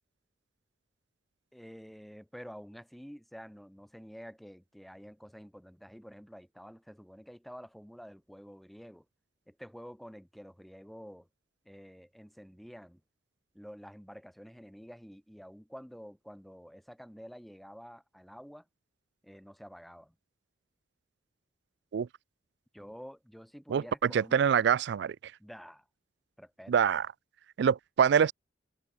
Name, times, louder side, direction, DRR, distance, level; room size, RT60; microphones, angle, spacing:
voice 1, 1.5-9.1 9.5-11.3 11.7-13.0 13.5-18.7 19.2-20.1 22.7-24.4 25.4-25.9 26.4-26.8, equal, ahead, 1.7 m, -49 dB
voice 2, 23.7-25.3 26.7-27.1 27.6-28.3, right 7 dB, 65° right, 0.3 m, -25 dB
head